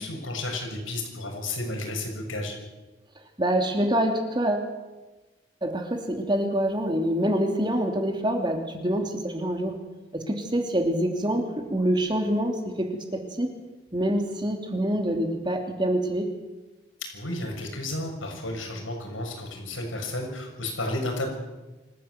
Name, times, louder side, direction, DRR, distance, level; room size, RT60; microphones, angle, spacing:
voice 1, 0.0-2.5 17.1-21.3, left 1 dB, 85° left, 2 dB, 6.7 m, -32 dB
voice 2, 3.4-4.7 5.6-9.8 10.1-13.5 13.9-16.3, right 1 dB, 25° right, 4 dB, 2.9 m, -26 dB
26.5 x 15.0 x 8.1 m, 1.2 s
head